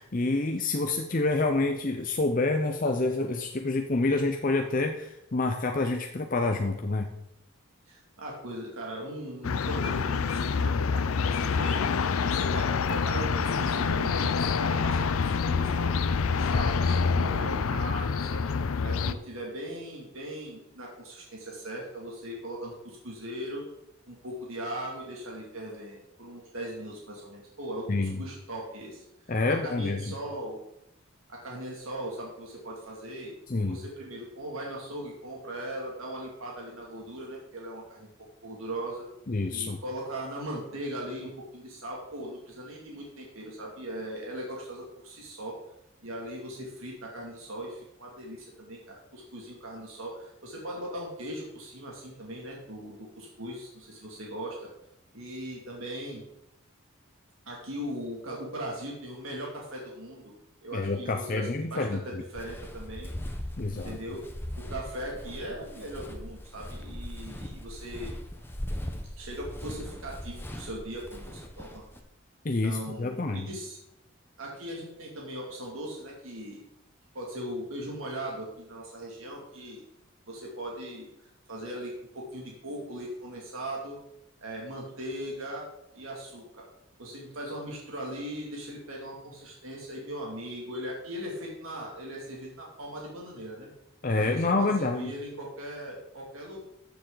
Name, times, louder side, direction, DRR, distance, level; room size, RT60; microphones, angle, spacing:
voice 1, 0.0-7.1 27.9-28.2 29.3-30.1 33.5-33.8 39.3-39.8 60.7-62.0 63.6-64.0 72.4-73.5 94.0-95.1, left 3 dB, 40° left, 4 dB, 0.6 m, -27 dB
voice 2, 7.9-11.8 12.2-15.1 15.4-15.9 16.2-18.4 18.8-23.7 24.1-30.6 31.3-33.3 33.7-38.1 38.4-39.1 39.5-45.5 46.0-54.7 55.1-56.2 57.5-60.3 60.6-63.1 63.7-64.3 64.6-68.1 69.2-71.8 72.6-73.8 74.4-76.6 77.1-79.8 80.3-81.1 81.5-84.0 84.4-85.7 85.9-86.7 87.0-93.7 94.1-96.6, right 1 dB, 80° right, -2 dB, 2.5 m, -39 dB
sound 1, 9.4-19.1, left 5 dB, 85° left, 0.5 m, -27 dB
Walk footsteps, 62.3-72.0, equal, 10° left, 0.9 m, -39 dB
14.0 x 7.1 x 3.9 m, 0.83 s
head